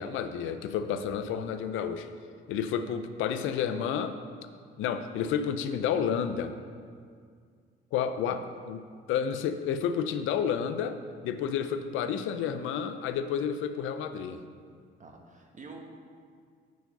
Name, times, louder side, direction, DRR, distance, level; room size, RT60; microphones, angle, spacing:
voice 1, 0.0-2.1 2.5-4.1 4.8-6.5 7.9-8.8 9.1-11.0 11.2-14.4, left 8 dB, 90° left, 9 dB, 0.5 m, -30 dB
voice 2, 15.0-15.8, right 4 dB, 40° right, 2 dB, 1.1 m, -47 dB
6.3 x 4.6 x 6.7 m, 2.1 s
cardioid pair, 90°, 20 cm